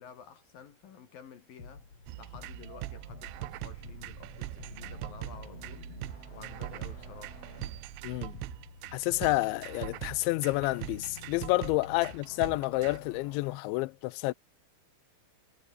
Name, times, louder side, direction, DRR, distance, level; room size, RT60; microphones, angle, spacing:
voice 1, 0.0-5.9 6.3-7.4 11.9-12.0, left 7 dB, 55° left, 3.4 m, -51 dB
sound 1, 1.6-13.6, left 4 dB, 30° left, 5.8 m, -49 dB
sound 2, 2.1-13.0, right 19 dB, 85° right, 3.2 m, -42 dB
voice 2, 8.0-8.3 8.9-14.3, left 21 dB, 85° left, 2.9 m, -29 dB
omnidirectional pair, 5.4 m